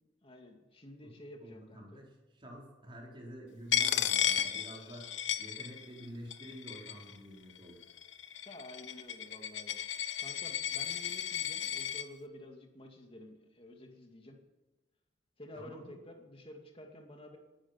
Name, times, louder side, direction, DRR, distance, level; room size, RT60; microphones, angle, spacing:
voice 1, 0.2-2.0 8.5-9.8 10.2-14.4 15.4-17.4, left 1 dB, 30° left, 3 dB, 2.4 m, -51 dB
voice 2, 1.4-7.8 15.5-16.0, equal, 30° right, -2 dB, 4.8 m, -49 dB
Coin (dropping), 3.7-6.0 6.3-7.1 7.8-12.0, left 9 dB, 85° left, 1.0 m, -34 dB
19.0 x 11.5 x 6.0 m, 1.1 s
head